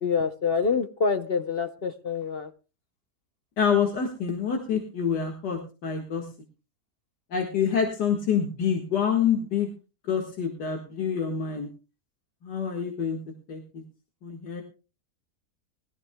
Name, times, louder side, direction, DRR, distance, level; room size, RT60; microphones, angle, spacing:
voice 1, 0.0-2.5, left 5 dB, 50° left, 8 dB, 0.8 m, -26 dB
voice 2, 3.6-6.3 7.3-9.7 10.1-11.7 12.4-13.2 13.5-13.8 14.2-14.6, left 7 dB, 90° left, 2 dB, 2.3 m, -27 dB
20.5 x 14.0 x 2.2 m, 0.32 s
omnidirectional pair, 1.7 m